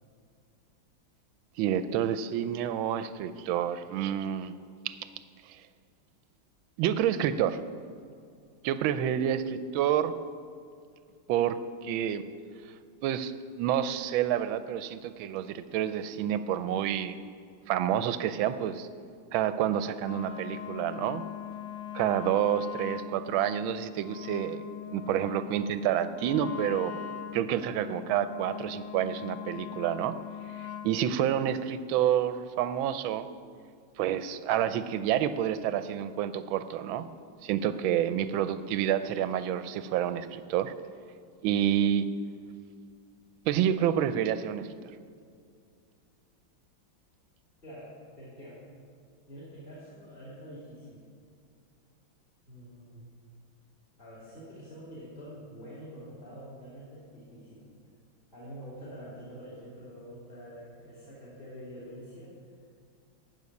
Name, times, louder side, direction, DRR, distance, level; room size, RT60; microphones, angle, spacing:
voice 1, 1.6-4.5 4.8-5.0 5.5-5.6 6.8-7.6 8.6-10.1 11.3-12.2 13.0-17.2 17.7-18.9 19.3-21.2 21.9-24.6 24.9-27.0 27.3-30.1 30.5-33.3 34.0-37.1 37.4-40.7 41.4-42.0 43.5-44.7, right 10 dB, 80° right, 12 dB, 1.4 m, -28 dB
Wind instrument woodwind instrument, 20.0-31.0, left 9 dB, 65° left, 1.6 m, -41 dB
voice 2, 47.6-48.6 49.3-51.0 52.5-53.0 54.0-57.7 58.3-62.3, equal, 25° left, -8 dB, 3.2 m, -46 dB
15.5 x 5.6 x 9.5 m, 2.3 s
omnidirectional pair, 2.2 m